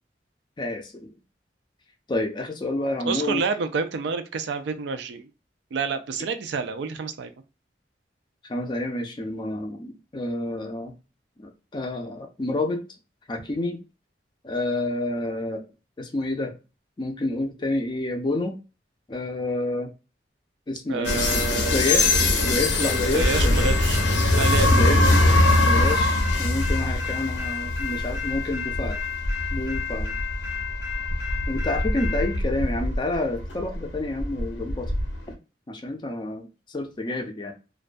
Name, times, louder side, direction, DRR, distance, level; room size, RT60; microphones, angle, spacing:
voice 1, 0.6-1.1 2.1-3.4 8.5-10.9 11.4-12.8 13.3-13.8 14.4-15.6 16.0-16.5 17.0-18.6 19.1-19.9 20.7-21.2 21.7-23.7 24.7-25.0 25.6-29.0 29.5-30.1 31.5-34.9 35.3-35.4 35.7-37.5, left 2 dB, 25° left, 5 dB, 0.4 m, -29 dB
voice 2, 3.1-5.3 5.7-7.3 20.9-21.8 23.1-24.0 24.3-24.9, right 4 dB, 75° right, 8 dB, 0.4 m, -28 dB
sound 1, 21.0-35.2, left 2 dB, 90° left, 0.6 m, -22 dB
2.2 x 2.2 x 2.5 m, 0.30 s
head